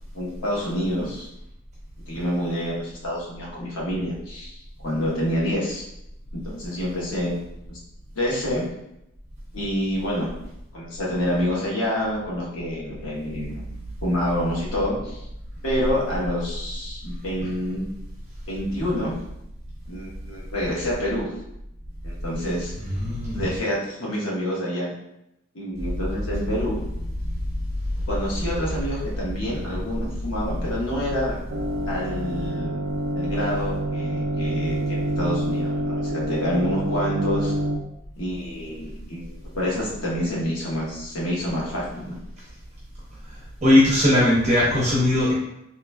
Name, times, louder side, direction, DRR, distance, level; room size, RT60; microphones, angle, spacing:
voice 1, 0.1-1.3 2.1-5.8 6.3-7.4 7.7-7.8 8.1-8.6 9.5-10.3 10.7-13.6 14.0-15.2 15.6-17.8 18.5-19.1 19.9-21.3 22.0-22.7 23.3-24.9 25.5-26.8 28.1-31.4 31.9-32.7 33.1-37.5 38.2-42.2, equal, 70° left, -5 dB, 1.2 m, -27 dB
voice 2, 23.0-23.4 43.6-45.3, left 1 dB, 35° right, -7 dB, 0.9 m, -18 dB
sound 1, 31.5-37.8, right 1 dB, 70° right, 0.5 m, -27 dB
3.7 x 2.9 x 2.2 m, 0.83 s
head